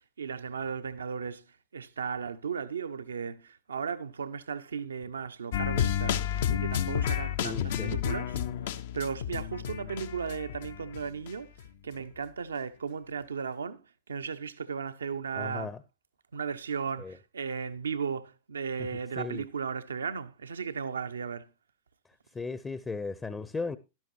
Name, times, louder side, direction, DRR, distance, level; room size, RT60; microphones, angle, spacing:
voice 1, 0.0-1.4 1.7-8.4 8.9-11.5 11.8-13.8 14.1-15.7 16.3-21.5, right 6 dB, 70° right, 1.0 m, -36 dB
sound 1, 5.5-11.3 11.6-11.7, left 9 dB, 55° left, 1.0 m, -31 dB
voice 2, 7.4-8.0 15.4-15.8 17.0-17.2 19.2-19.4 22.3-23.8, left 4 dB, 15° left, 0.9 m, -36 dB
12.5 x 12.0 x 2.9 m
figure-of-eight pair, 90°, 0 cm